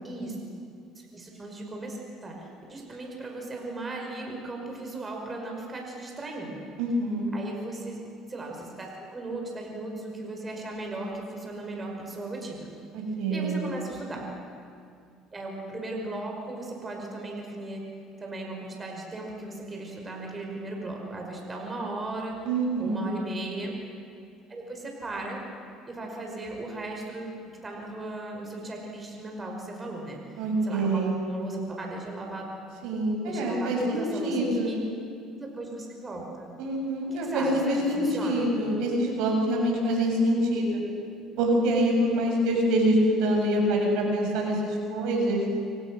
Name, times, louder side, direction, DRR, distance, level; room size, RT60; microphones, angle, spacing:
voice 1, 0.0-0.4 1.0-6.7 7.3-8.0 8.3-12.7 13.3-14.2 15.3-17.8 18.2-22.4 22.8-23.7 24.5-25.4 25.9-30.2 30.6-32.4 33.2-34.8 35.3-36.5 37.1-38.5, right 2 dB, 25° right, 1 dB, 5.6 m, -37 dB
voice 2, 6.8-7.3 12.9-13.7 22.5-23.1 30.4-31.2 32.8-34.7 36.6-40.8 41.4-45.4, right 1 dB, 80° right, 1 dB, 6.9 m, -25 dB
28.5 x 25.0 x 6.4 m, 2.4 s
supercardioid pair, 105°, 0 cm